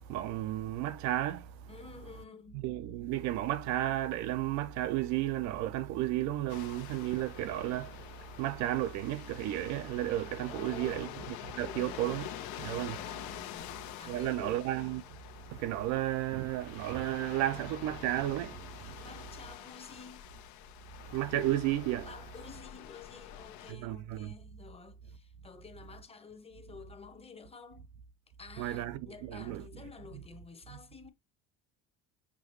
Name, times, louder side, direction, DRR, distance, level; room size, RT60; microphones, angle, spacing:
voice 1, 0.1-1.5 2.5-12.3 12.6-13.0 14.1-15.0 15.5-19.0 21.1-22.1 23.7-24.3 28.6-29.7 30.1-30.2 30.7-30.8, right 14 dB, 75° right, 0.7 m, -33 dB
voice 2, 1.7-2.6 10.5-11.2 11.6-12.2 12.8-14.6 18.9-20.3 22.0-27.9 28.4-31.1, left 5 dB, 20° left, 1.0 m, -50 dB
sound 1, 6.5-23.7, left 12 dB, 75° left, 0.9 m, -47 dB
6.0 x 2.3 x 3.1 m
supercardioid pair, 95°, 29 cm